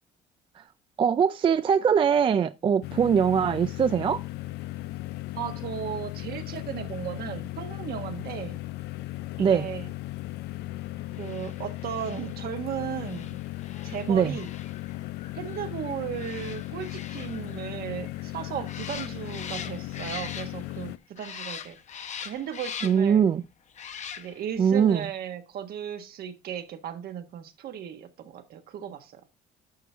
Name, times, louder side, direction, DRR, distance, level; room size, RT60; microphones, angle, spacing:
voice 1, 1.0-4.2 9.4-9.7 14.1-14.4 22.8-23.4 24.6-25.1, right 7 dB, 30° right, 0.4 m, -22 dB
sound 1, 2.8-21.0, left 16 dB, 80° left, 0.4 m, -37 dB
voice 2, 5.3-8.6 9.4-9.9 11.2-13.4 13.8-14.5 15.3-21.8 22.2-23.2 24.2-29.2, right 9 dB, 65° right, 1.4 m, -36 dB
sound 2, 11.1-20.9 21.2-23.2 23.7-24.6 24.9-25.0, left 7 dB, 45° left, 0.8 m, -42 dB
11.0 x 5.8 x 3.5 m
cardioid pair, 110°, 17 cm